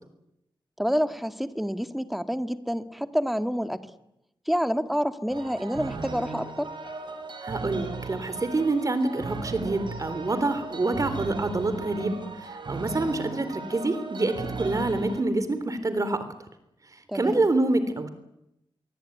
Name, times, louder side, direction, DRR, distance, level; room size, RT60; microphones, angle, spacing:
voice 1, 0.8-3.9 4.5-6.7 17.1-17.5, equal, ahead, 9 dB, 1.8 m, -28 dB
sound 1, 5.3-15.2, right 4 dB, 60° right, 4.7 m, -37 dB
voice 2, 7.4-16.2 17.1-18.1, right 2 dB, 40° right, 12 dB, 3.6 m, -26 dB
26.5 x 23.5 x 9.4 m, 0.86 s
wide cardioid pair, 95°, 9 cm